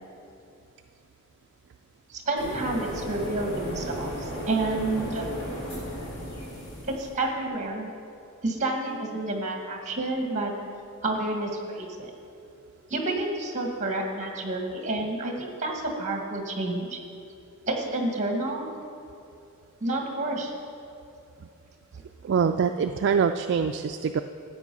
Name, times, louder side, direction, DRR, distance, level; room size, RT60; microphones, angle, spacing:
voice 1, 2.1-5.2 6.9-7.9 8.4-10.5 11.0-12.1 12.9-17.0 17.7-18.7 19.8-20.5, right 2 dB, 35° right, 2 dB, 1.6 m, -29 dB
sound 1, 2.4-7.1, equal, 55° left, 3.3 m, -35 dB
voice 2, 22.2-24.2, right 6 dB, 50° right, 7 dB, 0.3 m, -24 dB
13.5 x 8.2 x 5.4 m, 2.6 s
head